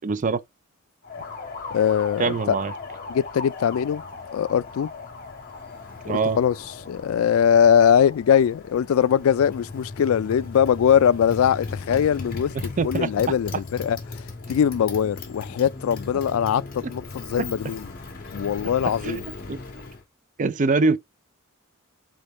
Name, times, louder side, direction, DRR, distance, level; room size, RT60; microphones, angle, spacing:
voice 1, 0.0-0.4 2.2-2.7 6.1-6.4 12.8-13.1 19.0-19.2 19.5-19.6 20.4-21.0, right 4 dB, 35° right, 0.4 m, -23 dB
Motorcycle, 1.0-20.0, left 3 dB, 45° left, 1.8 m, -37 dB
voice 2, 1.7-2.6 3.1-4.0 4.3-4.9 6.0-6.5 6.9-12.5 12.8-17.9 18.3-19.2, left 8 dB, 75° left, 0.3 m, -21 dB
3.8 x 3.4 x 4.1 m
head